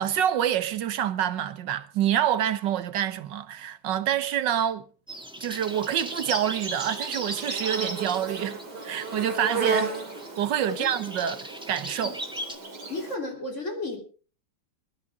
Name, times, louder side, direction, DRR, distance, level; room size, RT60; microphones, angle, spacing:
voice 1, 0.0-4.8 5.4-8.6 8.8-9.9 10.4-12.2, right 10 dB, 90° right, 1.7 m, -27 dB
sound 1, 5.1-12.5, equal, 5° right, 1.6 m, -40 dB
Insect, 5.5-13.1, right 4 dB, 65° right, 3.6 m, -34 dB
voice 2, 12.9-14.0, left 2 dB, 40° left, 4.0 m, -33 dB
21.5 x 13.5 x 3.7 m
omnidirectional pair, 1.9 m